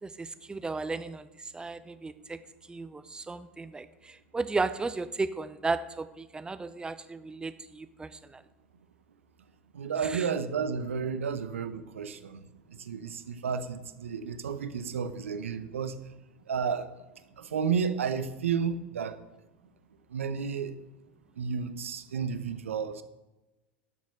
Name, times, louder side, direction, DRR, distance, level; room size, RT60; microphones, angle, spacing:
voice 1, 0.0-2.4 2.7-8.4 10.0-10.3, right 3 dB, 10° right, 0.7 m, -35 dB
voice 2, 9.7-12.4 12.7-16.0 16.5-16.9 17.4-19.2 20.1-20.8 21.4-23.0, right 6 dB, 75° right, 0.8 m, -32 dB
11.5 x 7.2 x 6.6 m
figure-of-eight pair, 80°, 7 cm